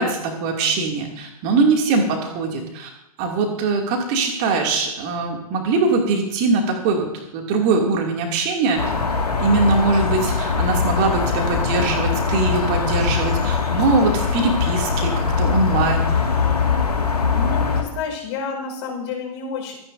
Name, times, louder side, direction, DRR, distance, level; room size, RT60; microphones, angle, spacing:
voice 1, 0.0-2.9 3.2-8.9 9.4-16.1, right 3 dB, 40° right, 1 dB, 2.6 m, -22 dB
sound 1, 8.8-17.8, left 5 dB, 85° left, 2.1 m, -21 dB
voice 2, 17.3-19.7, left 5 dB, 45° left, 1 dB, 4.9 m, -29 dB
26.0 x 10.0 x 2.7 m, 0.87 s
figure-of-eight pair, 100°, 20 cm